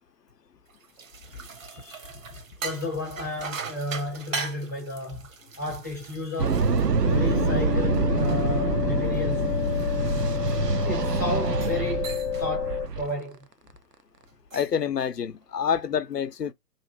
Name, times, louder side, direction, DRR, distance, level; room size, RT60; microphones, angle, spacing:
sound 1, 0.7-7.5 7.9-11.0 11.5-11.8 12.0-12.5 12.9-13.1 14.3-14.8, right 5 dB, 55° right, 0.9 m, -40 dB
voice 1, 2.6-5.3 5.6-6.6 7.1-9.5 10.9-13.5, left 1 dB, 10° left, 0.5 m, -33 dB
sound 2, 6.4-13.1, right 5 dB, 85° right, 0.7 m, -26 dB
sound 3, 7.0-12.9, left 8 dB, 50° left, 0.7 m, -28 dB
voice 2, 14.5-16.5, left 8 dB, 85° left, 0.6 m, -28 dB
3.1 x 2.6 x 2.9 m
figure-of-eight pair, 130°, 47 cm